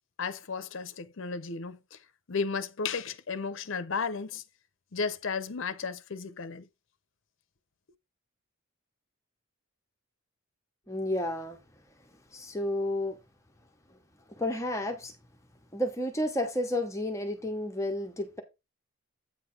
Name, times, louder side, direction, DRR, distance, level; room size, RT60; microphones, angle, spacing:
voice 1, 0.2-2.0 2.3-4.4 4.9-6.7, left 5 dB, 60° left, 0.6 m, -34 dB
voice 2, 10.9-11.6 12.3-13.2 14.4-15.1 15.7-18.4, left 1 dB, 15° left, 0.9 m, -31 dB
8.6 x 3.3 x 5.8 m
head